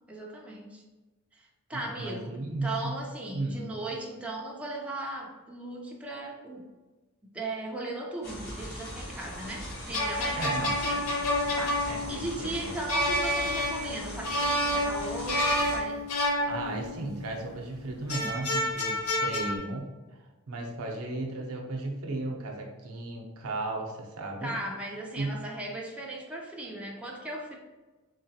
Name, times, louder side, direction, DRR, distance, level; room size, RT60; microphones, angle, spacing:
voice 1, 0.1-0.8 1.3-6.7 7.2-11.1 11.5-16.0 24.4-27.6, right 2 dB, 5° right, -2 dB, 0.5 m, -37 dB
voice 2, 1.7-3.0 3.3-3.7 10.4-10.8 11.9-12.7 16.5-19.9 20.5-24.5 25.1-25.3, right 2 dB, 80° right, 1 dB, 0.7 m, -35 dB
sound 1, 8.2-15.8, equal, 50° left, 1.2 m, -40 dB
sound 2, 9.7-17.2 18.1-19.6, left 1 dB, 90° left, 0.7 m, -29 dB
3.8 x 3.0 x 2.8 m, 1.2 s
head